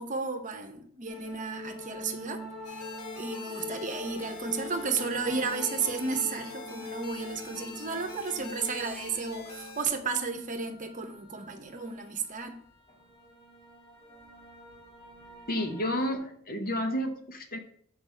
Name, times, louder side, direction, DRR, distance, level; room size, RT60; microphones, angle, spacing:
voice 1, 0.0-2.4 2.7-2.9 3.2-12.6, right 4 dB, 35° right, 6 dB, 0.9 m, -33 dB
sound 1, 1.1-16.2, left 1 dB, 25° left, 1.7 m, -44 dB
sound 2, 2.6-9.8, left 4 dB, 80° left, 1.1 m, -45 dB
voice 2, 15.5-17.6, equal, 45° left, 5 dB, 0.9 m, -31 dB
6.7 x 4.8 x 5.5 m, 0.64 s
head